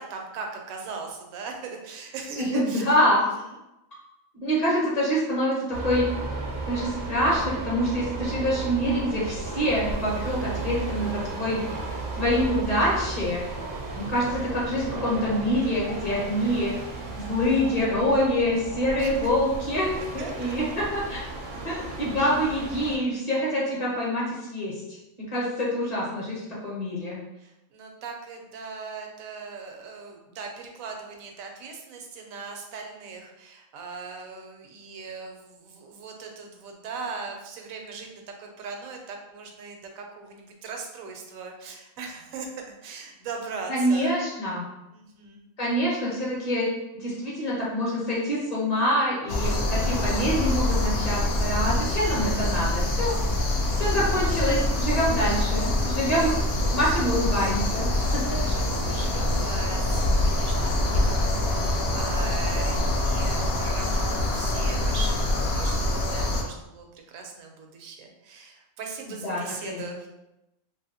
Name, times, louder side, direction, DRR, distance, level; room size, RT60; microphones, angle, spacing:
voice 1, 0.0-2.8 19.0-19.3 20.2-20.5 21.5-21.9 23.3-23.4 27.4-44.1 44.9-45.5 58.0-70.1, right 4 dB, 75° right, 2 dB, 1.0 m, -39 dB
voice 2, 2.4-3.2 4.4-6.1 6.7-11.6 12.1-13.4 13.9-16.7 17.2-21.3 21.6-24.7 25.3-26.3 26.6-27.2 43.7-44.6 45.6-46.7 47.0-53.2 53.7-56.4 56.7-58.4 69.2-69.9, equal, 35° left, -6 dB, 0.8 m, -26 dB
sound 1, 5.7-23.0, right 3 dB, 60° right, 0.7 m, -34 dB
sound 2, 49.3-66.4, left 1 dB, 65° left, 0.6 m, -25 dB
2.8 x 2.6 x 2.7 m, 0.93 s
omnidirectional pair, 1.5 m